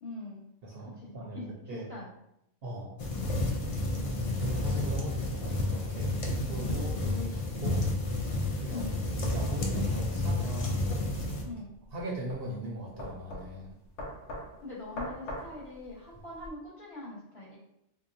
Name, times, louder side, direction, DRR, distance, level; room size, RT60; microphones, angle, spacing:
voice 1, 0.0-0.5 1.0-2.1 3.9-4.2 8.7-9.0 11.4-11.7 14.6-17.6, left 2 dB, 25° left, -9 dB, 1.3 m, -43 dB
voice 2, 0.6-1.9 2.6-2.9 4.0-4.1 4.4-7.8 8.6-8.9 9.1-10.8 11.9-13.7, right 1 dB, 60° right, -3 dB, 0.8 m, -39 dB
sound 1, 3.0-11.4, left 2 dB, 60° left, 0.3 m, -31 dB
sound 2, 11.7-16.5, equal, 75° left, 1.1 m, -43 dB
3.6 x 2.8 x 2.6 m, 0.81 s
omnidirectional pair, 1.2 m